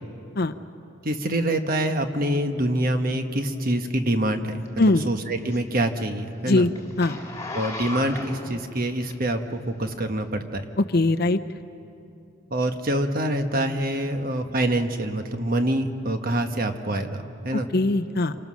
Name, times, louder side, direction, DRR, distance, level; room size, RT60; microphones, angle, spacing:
voice 1, 1.0-6.7 7.5-10.6 12.5-17.7, right 1 dB, 45° right, 6 dB, 1.3 m, -26 dB
Zipper (clothing), 4.6-9.6 10.1-10.3, left 2 dB, 15° left, 2.1 m, -37 dB
voice 2, 10.9-11.4 17.5-18.4, left 2 dB, 50° left, 10 dB, 0.7 m, -21 dB
27.0 x 24.5 x 6.4 m, 2.7 s
head